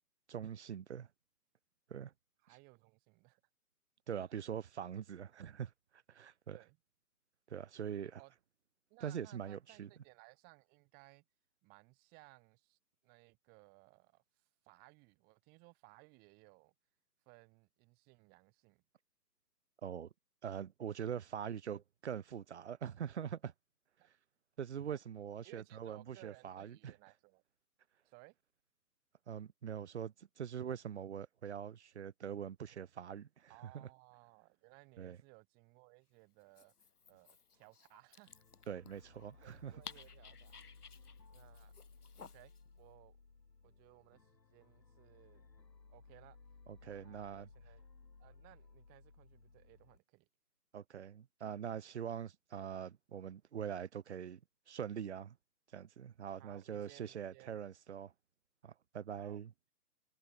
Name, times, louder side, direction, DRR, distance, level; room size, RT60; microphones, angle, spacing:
voice 1, 0.3-1.1 1.9-2.1 4.1-6.6 7.5-8.2 9.0-9.9 19.8-20.1 20.4-23.5 24.6-26.9 29.3-33.9 35.0-35.2 38.7-39.8 46.8-47.5 50.7-54.4 54.7-55.4 55.7-58.1 58.6-59.5, right 8 dB, 45° right, 1.2 m, -43 dB
voice 2, 2.4-3.4 4.1-4.4 6.5-6.8 8.2-8.3 8.9-11.2 11.6-16.7 17.3-18.8 24.0-24.1 24.9-25.0 25.4-27.4 28.0-28.4 33.5-36.7 37.1-38.3 39.4-40.6 41.3-41.7 42.2-43.2 43.6-45.5 45.9-46.4 46.8-47.9 48.2-50.3 56.3-57.6 59.2-59.4, right 28 dB, 20° right, 5.6 m, -62 dB
Dog, 36.4-42.6, left 6 dB, 65° left, 4.5 m, -57 dB
sound 1, 38.3-50.0, left 4 dB, 80° left, 6.7 m, -60 dB
figure-of-eight pair, 150°, 49 cm